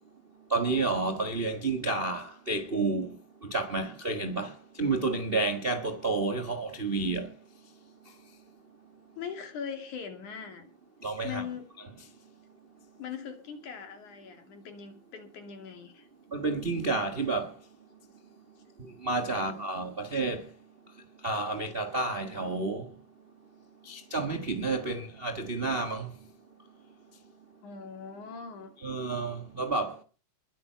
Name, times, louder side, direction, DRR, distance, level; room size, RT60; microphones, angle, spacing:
voice 1, 0.5-3.2 3.4-7.3 11.0-11.4 16.3-17.5 19.0-20.5 21.2-22.9 23.8-26.1 28.8-30.0, right 3 dB, 70° right, 0.5 m, -30 dB
voice 2, 9.2-10.7 11.2-11.7 13.0-16.1 27.6-28.7, left 7 dB, 65° left, 4.1 m, -41 dB
21.5 x 9.2 x 5.6 m
omnidirectional pair, 3.7 m